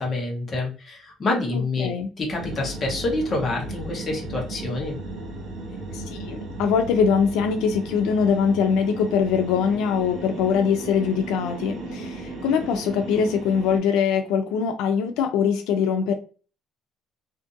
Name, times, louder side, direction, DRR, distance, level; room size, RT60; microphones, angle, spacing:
voice 1, 0.0-1.9 2.2-5.0, left 2 dB, 25° left, 0 dB, 0.8 m, -27 dB
sound 1, 2.3-13.8, right 2 dB, 55° right, 1.2 m, -35 dB
voice 2, 5.9-16.1, left 6 dB, 80° left, 6 dB, 0.4 m, -22 dB
2.5 x 2.5 x 2.5 m, 0.36 s
cardioid pair, 170°, 0 cm